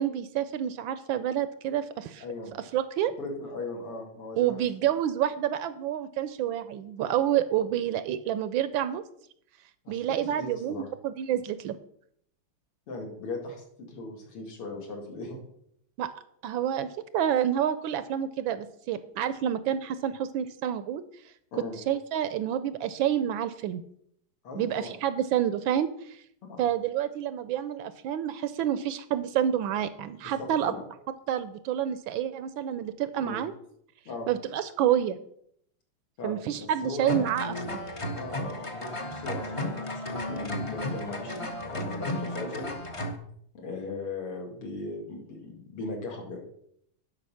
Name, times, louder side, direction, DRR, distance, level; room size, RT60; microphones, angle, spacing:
voice 1, 0.0-2.2 2.7-3.1 4.4-9.0 9.9-11.8 16.0-16.1 16.4-16.9 17.1-21.0 21.9-23.8 24.5-26.2 26.6-30.7 31.3-33.5 34.3-35.2 36.2-37.8, right 10 dB, 75° right, 13 dB, 1.2 m, -28 dB
voice 2, 2.2-2.6 3.2-4.6 9.8-10.9 12.9-15.4 21.5-21.8 24.4-24.9 26.4-26.6 30.2-30.8 33.2-33.4 34.0-34.3 36.2-37.3 38.1-42.7 43.6-46.4, left 3 dB, 85° left, 1 dB, 3.2 m, -38 dB
sound 1, 37.1-43.1, left 1 dB, 35° left, 0.5 m, -34 dB
11.5 x 5.6 x 5.6 m, 0.69 s
omnidirectional pair, 2.4 m